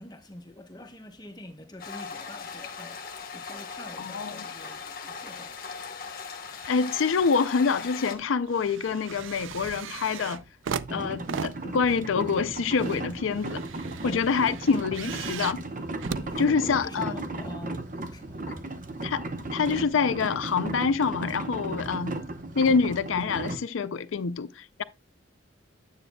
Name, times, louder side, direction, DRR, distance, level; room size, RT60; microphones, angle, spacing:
voice 1, 0.0-5.6 14.0-14.4 16.0-18.7, left 1 dB, 20° left, 1.0 m, -45 dB
sound 1, 1.8-8.2, left 5 dB, 45° left, 1.2 m, -39 dB
voice 2, 4.0-4.4 6.7-10.4 10.9-13.6 14.0-15.6 16.4-17.1 19.0-19.2 19.5-22.1 22.6-24.8, left 5 dB, 80° left, 0.5 m, -26 dB
sound 2, 6.6-7.3 7.7-17.1 17.8-17.9, right 6 dB, 75° right, 0.5 m, -38 dB
sound 3, 10.9-23.6, right 2 dB, 40° right, 0.9 m, -35 dB
9.4 x 8.0 x 2.3 m
head